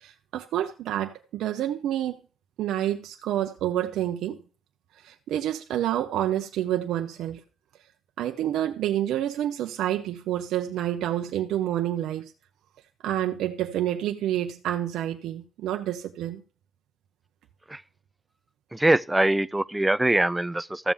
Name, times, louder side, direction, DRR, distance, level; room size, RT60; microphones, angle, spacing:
voice 1, 0.0-2.2 2.6-4.4 5.0-7.4 8.2-12.3 13.0-16.4, right 12 dB, 80° right, 0.7 m, -28 dB
voice 2, 18.7-20.9, right 1 dB, 10° right, 0.4 m, -23 dB
14.0 x 7.2 x 3.5 m
cardioid pair, 90°, 0 cm